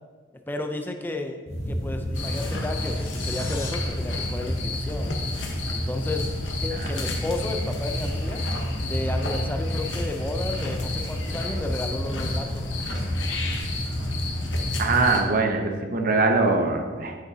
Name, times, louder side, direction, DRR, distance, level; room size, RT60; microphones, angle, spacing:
voice 1, 0.5-1.4 1.7-5.2 5.7-6.3 6.6-8.4 8.8-12.7, left 2 dB, 10° left, 4 dB, 0.5 m, -32 dB
sound 1, 1.5-15.2, equal, 35° left, 1.1 m, -30 dB
sound 2, 2.1-15.2, left 3 dB, 80° left, 1.1 m, -35 dB
sound 3, 2.6-3.7, left 5 dB, 50° left, 1.9 m, -40 dB
voice 2, 14.8-17.1, right 3 dB, 50° right, 3 dB, 0.8 m, -22 dB
9.0 x 6.4 x 2.8 m, 1.5 s
head